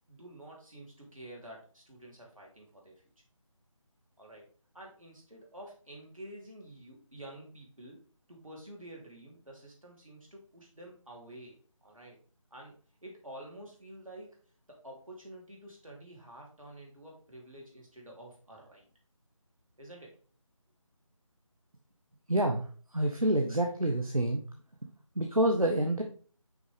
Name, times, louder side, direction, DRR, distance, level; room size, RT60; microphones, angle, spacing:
voice 1, 0.1-2.9 4.2-4.5 4.7-8.0 8.3-12.2 12.5-14.4 14.7-18.8 19.8-20.2, right 1 dB, 75° right, -1 dB, 3.2 m, -49 dB
voice 2, 22.3-22.6 22.9-24.4 25.1-26.0, right 1 dB, 90° right, 3 dB, 1.1 m, -27 dB
6.2 x 5.3 x 3.5 m, 0.42 s
figure-of-eight pair, 160°, 18 cm